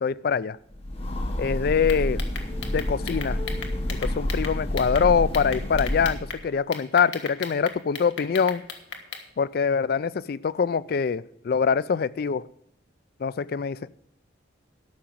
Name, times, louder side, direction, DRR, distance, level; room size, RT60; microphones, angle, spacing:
voice 1, 0.0-0.6 1.4-2.2 2.7-3.4 3.9-8.6 9.4-12.5 13.2-14.0, left 6 dB, 55° left, 19 dB, 0.4 m, -24 dB
Train, 0.7-6.4, left 1 dB, 30° left, 1.1 m, -29 dB
sound 1, 1.8-5.0 5.3-6.4 6.7-9.2, left 5 dB, 80° left, 1.5 m, -36 dB
12.5 x 7.6 x 5.8 m, 0.78 s
head